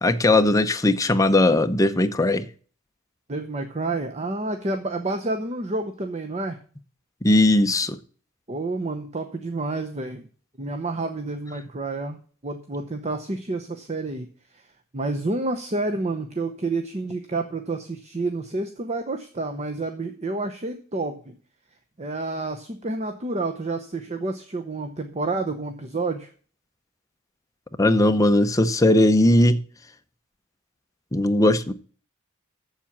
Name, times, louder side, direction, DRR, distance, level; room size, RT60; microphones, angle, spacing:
voice 1, 0.0-2.5 7.2-8.0 27.8-29.6 31.1-31.7, left 1 dB, 15° left, 0.6 m, -18 dB
voice 2, 3.3-6.6 8.5-10.2 10.6-12.2 12.4-14.3 14.9-21.3 22.0-26.3, right 2 dB, 30° right, 0.8 m, -29 dB
7.4 x 7.3 x 7.2 m
head